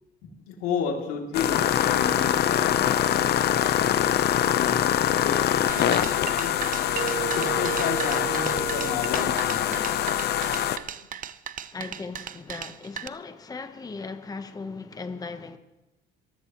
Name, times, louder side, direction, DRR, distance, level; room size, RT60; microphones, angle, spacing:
voice 1, 0.2-10.0 10.4-10.7, left 6 dB, 85° left, 2.8 m, -34 dB
sound 1, 1.3-10.8, left 10 dB, 50° left, 0.8 m, -24 dB
sound 2, 1.6-8.9, right 12 dB, 65° right, 3.5 m, -39 dB
sound 3, 5.7-13.1, right 9 dB, 40° right, 0.7 m, -37 dB
voice 2, 11.7-15.6, left 4 dB, 15° left, 1.0 m, -37 dB
24.0 x 15.0 x 3.1 m
cardioid pair, 120°, 21 cm